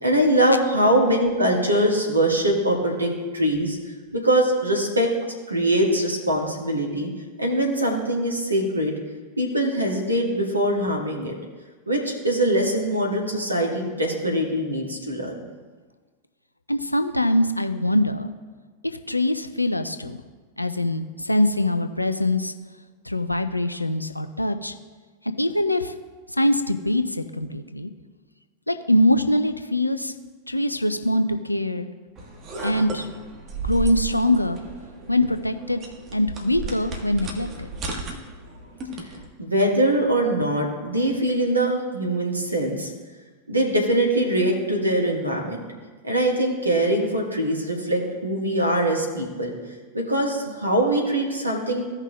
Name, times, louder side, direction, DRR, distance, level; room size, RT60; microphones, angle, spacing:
voice 1, 0.0-3.8 4.1-5.1 5.5-7.1 7.4-9.0 9.4-11.4 11.9-15.4 39.4-42.9 43.5-45.6 46.0-49.5 49.9-51.8, right 1 dB, 80° right, 1 dB, 1.6 m, -22 dB
voice 2, 16.7-18.3 19.1-20.2 20.6-22.5 23.1-24.7 25.4-25.9 26.3-27.9 28.7-30.1 30.5-31.9 32.6-33.1 33.6-34.6 35.1-35.8 36.1-37.7, left 1 dB, 85° left, 9 dB, 0.5 m, -23 dB
sound 1, 32.2-39.3, right 2 dB, 30° right, 1.3 m, -34 dB
16.0 x 5.7 x 2.3 m, 1.4 s
figure-of-eight pair, 90°, 0 cm